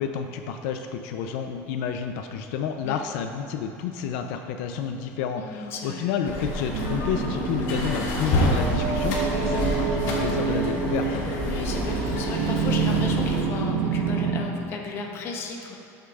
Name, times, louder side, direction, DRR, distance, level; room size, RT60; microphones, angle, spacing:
voice 1, 0.0-11.3, left 7 dB, 80° left, 6 dB, 0.4 m, -30 dB
voice 2, 5.4-6.1 9.3-9.5 11.5-15.7, left 4 dB, 35° left, 2 dB, 0.8 m, -35 dB
sound 1, 6.2-13.4, left 1 dB, 65° left, 1.3 m, -29 dB
sound 2, 6.7-14.4, right 5 dB, 85° right, 0.9 m, -27 dB
13.0 x 6.5 x 2.3 m, 2.8 s
cardioid pair, 175°, 7 cm